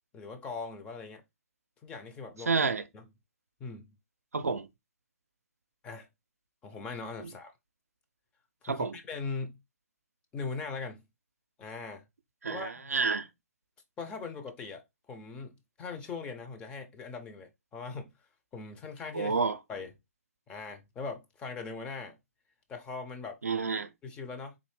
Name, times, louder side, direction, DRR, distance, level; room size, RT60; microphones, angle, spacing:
voice 1, 0.1-1.2 1.8-2.5 2.9-3.1 3.6-3.9 5.8-6.1 6.6-7.5 8.6-9.6 10.3-11.0 11.6-12.0 12.5-12.9 14.0-18.1 18.5-19.4 19.7-19.9 20.5-22.2 22.7-23.4 24.0-24.6, left 4 dB, 15° left, 0.6 m, -40 dB
voice 2, 2.5-2.8 4.3-4.7 8.6-8.9 12.4-13.3 19.1-19.6 23.4-23.9, right 4 dB, 75° right, 0.5 m, -29 dB
3.7 x 2.6 x 3.2 m
figure-of-eight pair, 135°, 8 cm